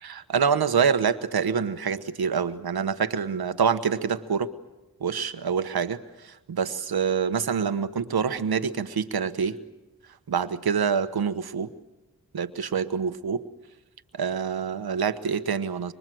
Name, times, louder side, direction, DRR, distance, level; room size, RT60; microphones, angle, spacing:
voice 1, 0.0-4.5 5.0-9.6 10.3-11.7 12.3-13.4 14.1-15.9, right 6 dB, 80° right, 10 dB, 1.3 m, -26 dB
25.0 x 24.5 x 7.8 m, 1.0 s
wide cardioid pair, 70°, 37 cm